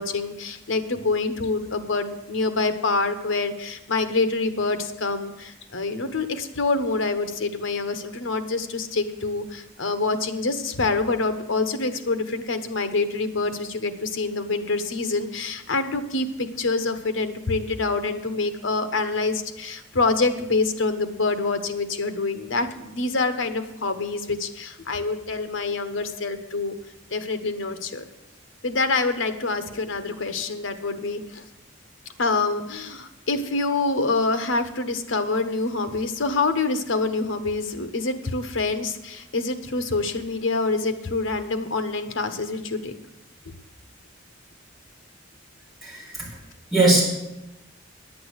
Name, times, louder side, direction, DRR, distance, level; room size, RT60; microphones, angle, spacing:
voice 1, 0.0-26.7 27.1-28.0 28.6-31.4 32.2-42.9, left 3 dB, 75° left, 9 dB, 1.1 m, -26 dB
voice 2, 45.8-46.4 46.7-47.0, right 2 dB, ahead, -7 dB, 4.5 m, -20 dB
10.0 x 8.5 x 8.1 m, 0.95 s
head